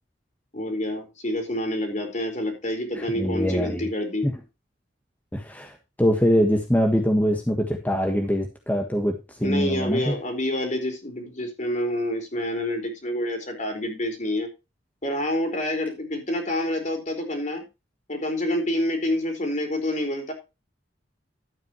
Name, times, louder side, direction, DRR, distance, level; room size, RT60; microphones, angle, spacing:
voice 1, 0.5-4.3 9.4-14.5 15.0-17.7 18.1-20.3, left 1 dB, 45° left, 3 dB, 4.3 m, -27 dB
voice 2, 2.9-3.9 4.2-4.3 5.3-10.1, equal, 10° left, 3 dB, 1.5 m, -23 dB
12.5 x 8.9 x 3.1 m, 0.27 s
head